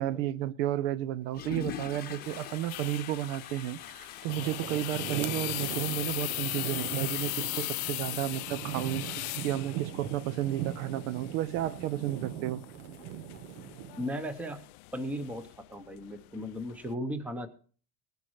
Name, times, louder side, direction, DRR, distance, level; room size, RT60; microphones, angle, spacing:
voice 1, 0.0-12.6, right 13 dB, 60° right, 0.7 m, -32 dB
Water / Toilet flush, 1.3-9.0, left 8 dB, 20° left, 0.9 m, -45 dB
sound 1, 2.2-16.9, left 23 dB, 80° left, 0.5 m, -39 dB
sound 2, 4.3-14.1, right 10 dB, 80° right, 1.3 m, -40 dB
voice 2, 14.0-14.6 14.9-17.5, equal, 5° right, 0.7 m, -36 dB
19.5 x 10.5 x 3.1 m
supercardioid pair, 170°, 44 cm